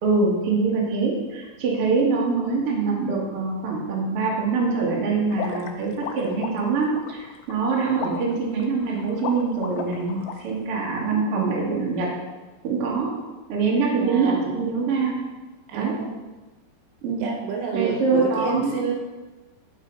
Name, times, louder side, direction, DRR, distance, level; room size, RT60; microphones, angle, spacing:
voice 1, 0.0-12.1 12.6-13.1 13.5-15.2 15.7-16.0 17.0-17.3 17.7-18.7, right 4 dB, 45° right, -4 dB, 2.0 m, -24 dB
sound 1, 5.3-10.3, left 7 dB, 80° left, 2.5 m, -35 dB
voice 2, 10.8-11.5 14.0-14.5 15.7-16.2 17.2-18.9, right 5 dB, 80° right, 0 dB, 3.3 m, -29 dB
14.0 x 4.9 x 4.0 m, 1.2 s
omnidirectional pair, 5.0 m